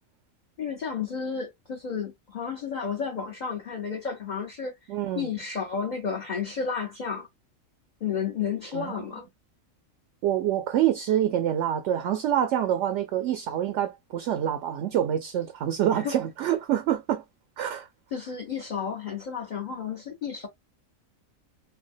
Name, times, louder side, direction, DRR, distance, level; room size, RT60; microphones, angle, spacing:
voice 1, 0.6-4.7 5.1-7.3 8.0-9.3 15.9-16.1 18.1-20.5, left 6 dB, 40° left, 0.7 m, -32 dB
voice 2, 4.9-5.3 8.7-8.9 10.2-17.2 17.6-17.9, right 11 dB, 70° right, 0.8 m, -26 dB
3.4 x 2.2 x 2.5 m
omnidirectional pair, 1.4 m